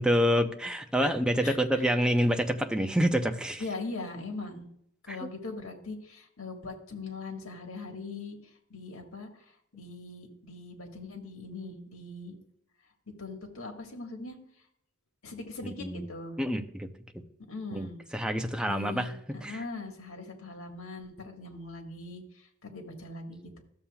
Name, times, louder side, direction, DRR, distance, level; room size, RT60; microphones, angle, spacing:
voice 1, 0.0-3.6 5.1-5.2 15.8-16.0 16.4-16.9 17.7-19.1 19.4-19.6, equal, 5° right, 6 dB, 0.5 m, -27 dB
voice 2, 1.4-1.8 3.6-4.7 5.0-8.4 8.7-9.3 9.7-12.3 13.2-14.4 15.2-16.4 17.5-18.0 18.6-23.6, left 3 dB, 85° left, 3 dB, 1.6 m, -41 dB
13.0 x 7.1 x 2.3 m, 0.73 s
head